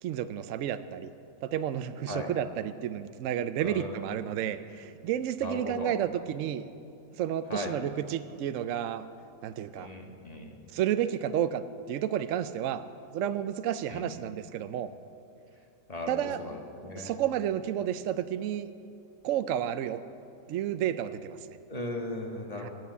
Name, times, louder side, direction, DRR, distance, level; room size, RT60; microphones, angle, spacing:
voice 1, 0.0-1.1 1.4-6.6 7.2-9.1 9.4-9.9 10.7-11.6 11.9-12.9 13.1-14.9 16.1-16.4 17.0-18.7 19.2-20.0 20.5-21.6 22.6-22.7, right 10 dB, 75° right, 11 dB, 0.7 m, -31 dB
voice 2, 3.6-4.1 5.4-5.9 7.5-7.7 9.7-10.6 13.9-14.1 15.9-17.1 21.7-22.7, left 2 dB, 25° left, 1 dB, 1.4 m, -37 dB
14.5 x 9.5 x 8.2 m, 2.6 s
omnidirectional pair, 1.9 m